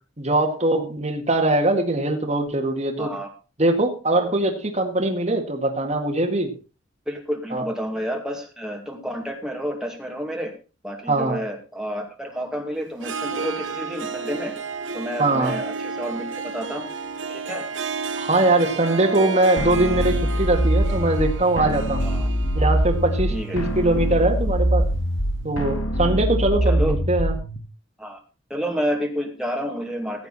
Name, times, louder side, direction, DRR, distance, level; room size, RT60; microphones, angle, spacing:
voice 1, 0.2-3.1 3.6-6.5 7.5-7.6 11.1-11.4 15.2-15.5 18.2-22.1 22.6-24.9 25.4-27.3, right 2 dB, 35° right, 2 dB, 1.9 m, -21 dB
voice 2, 3.0-3.3 4.1-4.3 7.1-10.5 10.8-14.5 14.9-16.9 17.3-17.6 22.0-22.3 23.3-23.6 26.7-27.0 28.0-28.2 28.5-30.3, equal, 5° right, 1 dB, 2.3 m, -30 dB
Harp, 12.9-24.8, right 4 dB, 65° right, 1.2 m, -32 dB
sound 1, 19.6-27.6, equal, 80° left, 2.0 m, -23 dB
16.0 x 8.1 x 4.2 m, 0.33 s
head